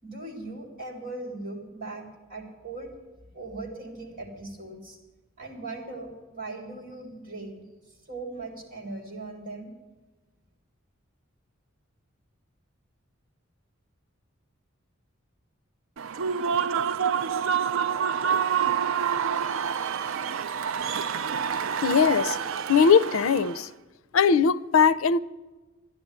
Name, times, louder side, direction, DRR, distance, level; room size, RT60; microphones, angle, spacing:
voice 1, 0.0-3.0 3.3-5.0 5.4-7.6 8.1-9.7, right 2 dB, 45° right, 3.6 m, -39 dB
Human voice / Cheering / Applause, 16.0-23.6, right 7 dB, 75° right, 0.5 m, -27 dB
voice 2, 21.8-22.4 22.7-23.7 24.1-25.2, left 6 dB, 90° left, 0.5 m, -20 dB
13.0 x 10.5 x 9.7 m
head